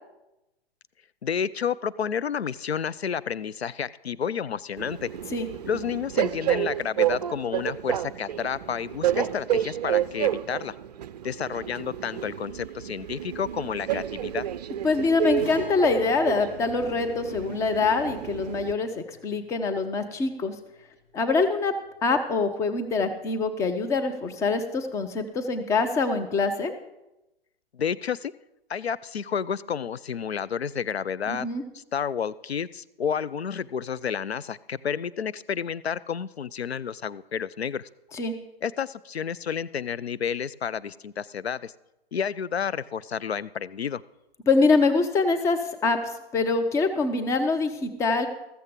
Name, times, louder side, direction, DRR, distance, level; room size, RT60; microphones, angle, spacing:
voice 1, 1.2-5.1 5.7-10.7 11.2-14.5 27.7-28.3 28.7-31.5 31.7-37.9 38.6-41.7 42.1-44.0, left 7 dB, 80° left, 16 dB, 0.5 m, -30 dB
Train, 4.8-18.7, right 11 dB, 40° right, 0.5 m, -30 dB
voice 2, 14.8-20.5 21.1-21.7 22.0-26.7 31.3-31.6 38.1-38.3 44.5-48.3, left 4 dB, 10° left, 8 dB, 0.6 m, -24 dB
Guitar, 15.4-23.0 23.3-23.4 25.4-25.5, left 1 dB, 30° left, 6.0 m, -48 dB
14.0 x 14.0 x 3.6 m, 0.95 s
figure-of-eight pair, 115°, 31 cm